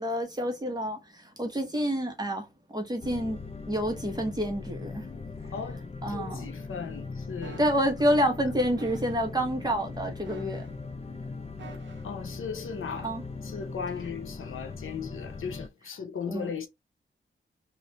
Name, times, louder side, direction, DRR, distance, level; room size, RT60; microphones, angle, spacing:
voice 1, 0.0-5.1 5.4-5.5 6.0-6.5 7.6-10.7 13.0-13.2 16.3-16.5, equal, 20° right, 1.1 m, -28 dB
sound 1, 3.0-15.7, left 4 dB, 30° left, 0.4 m, -40 dB
voice 2, 5.5-7.6 12.0-13.1 13.4-16.7, left 6 dB, 85° left, 0.6 m, -37 dB
sound 2, 7.4-7.9 8.8-9.3 10.2-10.9 11.6-12.2 12.9-13.1, right 7 dB, 70° right, 0.7 m, -48 dB
3.1 x 2.5 x 2.9 m
wide cardioid pair, 110°, 20 cm